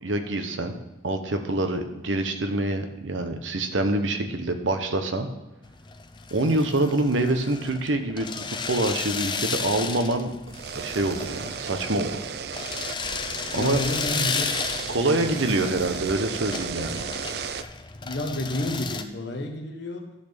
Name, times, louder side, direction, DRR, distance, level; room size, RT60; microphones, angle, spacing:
voice 1, 0.0-0.7 1.0-5.3 6.3-10.3 10.7-12.3 13.5-13.8 14.9-17.1, right 2 dB, 85° right, 6 dB, 1.0 m, -26 dB
sound 1, 5.6-19.0, left 5 dB, 25° left, 0.5 m, -34 dB
sound 2, 10.5-17.6, right 6 dB, 55° right, 0.4 m, -34 dB
voice 2, 13.5-14.6 14.9-15.7 18.0-20.1, left 1 dB, 65° left, 3 dB, 1.4 m, -31 dB
12.0 x 4.3 x 6.7 m, 1.0 s
head